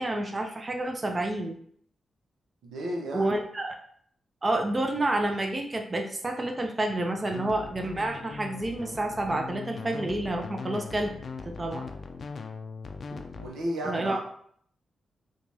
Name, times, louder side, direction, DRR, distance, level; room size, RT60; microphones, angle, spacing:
voice 1, 0.0-1.6 3.1-3.7 4.4-11.1 11.5-11.9 13.1-13.2 13.8-14.2, right 1 dB, 35° right, 3 dB, 0.5 m, -29 dB
voice 2, 2.6-3.3 13.3-14.2, right 1 dB, 90° right, 0 dB, 0.6 m, -33 dB
sound 1, 7.3-13.5, left 4 dB, 60° left, 0.4 m, -40 dB
4.5 x 2.3 x 2.7 m, 0.62 s
cardioid pair, 55°, 0 cm